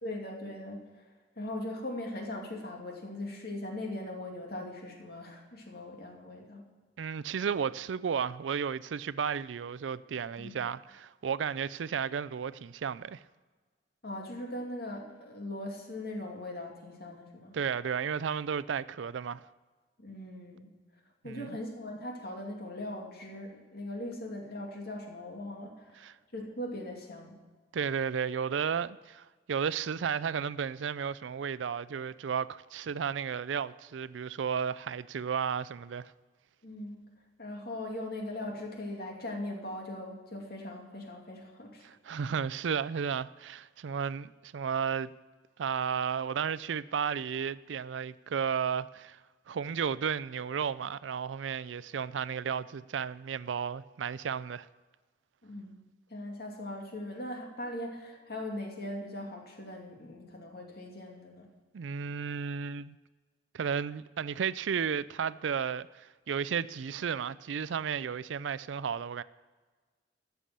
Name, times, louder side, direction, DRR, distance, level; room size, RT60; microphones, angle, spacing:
voice 1, 0.0-0.9 1.4-6.7 10.4-10.5 14.0-17.5 20.0-20.7 21.2-27.4 36.6-37.1 37.4-41.8 55.4-55.7 56.1-61.5, left 1 dB, 60° left, 2.4 m, -40 dB
voice 2, 7.0-13.2 17.5-19.5 21.2-21.5 26.0-26.2 27.7-36.1 41.8-45.1 45.6-49.2 49.5-54.7 61.7-63.0 63.5-69.2, right 7 dB, 90° right, 0.4 m, -33 dB
14.0 x 7.0 x 7.4 m
head